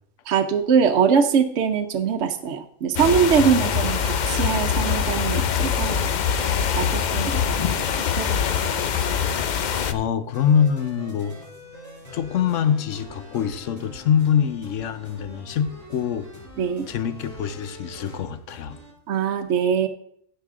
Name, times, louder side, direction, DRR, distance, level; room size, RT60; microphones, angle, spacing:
voice 1, 0.3-6.1 6.8-7.8 8.2-8.7 16.6-16.9 19.1-19.9, right 7 dB, 70° right, 6 dB, 1.0 m, -22 dB
sound 1, 3.0-9.9, left 7 dB, 55° left, 0.5 m, -23 dB
voice 2, 3.4-3.9 9.5-11.4 12.1-16.3 16.9-18.8, left 8 dB, 80° left, 12 dB, 1.1 m, -24 dB
sound 2, 10.3-18.9, equal, 15° left, 4.7 m, -43 dB
16.0 x 5.7 x 3.6 m, 0.67 s
omnidirectional pair, 1.3 m